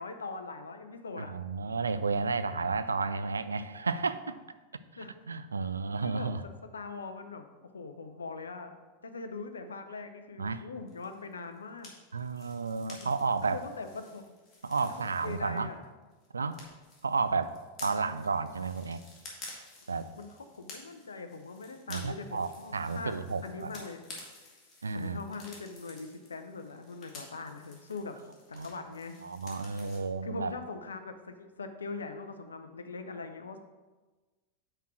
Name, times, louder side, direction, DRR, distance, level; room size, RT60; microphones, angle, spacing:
voice 1, 0.0-1.3 5.0-5.1 6.0-6.3 6.7-8.7 9.0-11.9 13.4-14.3 14.8-15.8 17.9-18.1 20.1-23.2 23.4-24.0 24.9-28.2 28.5-29.2 30.2-33.6, left 4 dB, 70° left, 8 dB, 0.6 m, -42 dB
voice 2, 1.2-4.4 4.9-6.4 10.4-10.7 12.1-13.6 14.6-15.7 16.3-16.6 17.0-17.5 17.8-19.0 19.9-20.1 21.9-23.7 24.8-25.2 28.5-28.7 29.2-30.5, right 4 dB, 75° right, 12 dB, 0.3 m, -32 dB
sound 1, 10.9-15.9 16.1-30.0, left 2 dB, 25° left, 2.1 m, -52 dB
5.8 x 4.5 x 6.1 m, 1.3 s
figure-of-eight pair, 90°, 0 cm